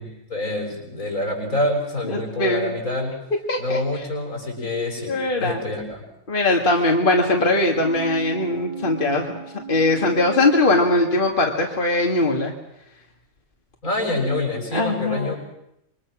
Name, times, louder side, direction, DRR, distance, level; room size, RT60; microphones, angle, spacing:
voice 1, 0.0-3.2 3.6-6.0 13.8-15.4, left 2 dB, 80° left, 1 dB, 7.2 m, -26 dB
voice 2, 2.1-2.7 3.5-3.8 5.1-5.6 6.3-9.3 9.7-12.5 14.7-15.3, left 2 dB, 40° left, 1 dB, 2.4 m, -20 dB
sound 1, 7.7-11.5 11.8-11.9, right 10 dB, 35° right, 3.5 m, -36 dB
26.5 x 24.0 x 6.3 m, 0.81 s
omnidirectional pair, 1.4 m